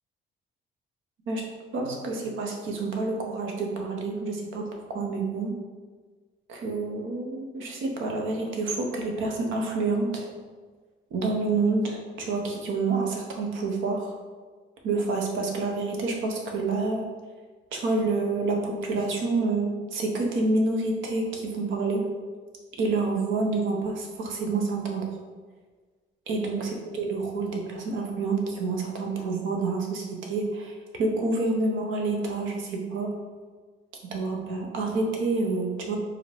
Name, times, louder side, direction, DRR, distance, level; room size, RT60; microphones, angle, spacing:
voice 1, 1.7-5.5 6.5-10.3 11.1-14.1 14.8-17.0 17.7-22.0 22.8-25.1 26.3-26.7 27.0-33.1 34.1-36.0, right 3 dB, 80° right, 1 dB, 0.9 m, -28 dB
4.9 x 2.9 x 3.4 m, 1.5 s
cardioid pair, 90°, 20 cm